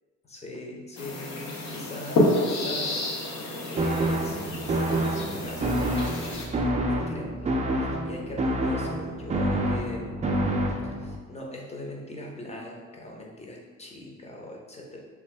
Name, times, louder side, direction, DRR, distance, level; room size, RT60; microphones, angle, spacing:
voice 1, 0.2-3.2 3.7-10.3 10.8-15.0, left 1 dB, 20° left, -1 dB, 0.7 m, -41 dB
sound 1, 1.0-6.5, left 1 dB, 65° left, 0.7 m, -29 dB
sound 2, 3.8-11.2, right 1 dB, 25° right, 0.4 m, -27 dB
3.4 x 2.2 x 3.2 m, 1.5 s
cardioid pair, 90°, 30 cm